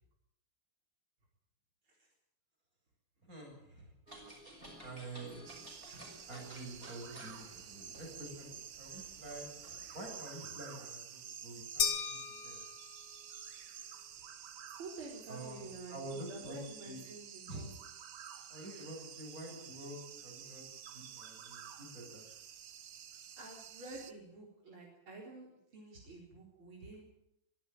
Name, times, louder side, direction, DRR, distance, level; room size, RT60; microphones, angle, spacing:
voice 1, 3.3-3.9 4.8-5.4 6.3-9.5 9.9-12.6 15.3-17.0 17.5-17.7 18.5-22.3, right 1 dB, 40° right, 0 dB, 8.6 m, -48 dB
sound 1, 4.1-10.2, right 1 dB, 25° right, 6.7 m, -54 dB
sound 2, 5.5-24.1, right 8 dB, 60° right, 1.6 m, -50 dB
sound 3, 11.8-13.2, left 7 dB, 55° left, 2.0 m, -36 dB
voice 2, 14.8-17.7 23.4-25.5 25.7-27.1, right 3 dB, 80° right, -1 dB, 5.2 m, -49 dB
23.5 x 13.5 x 9.1 m, 0.78 s
omnidirectional pair, 2.3 m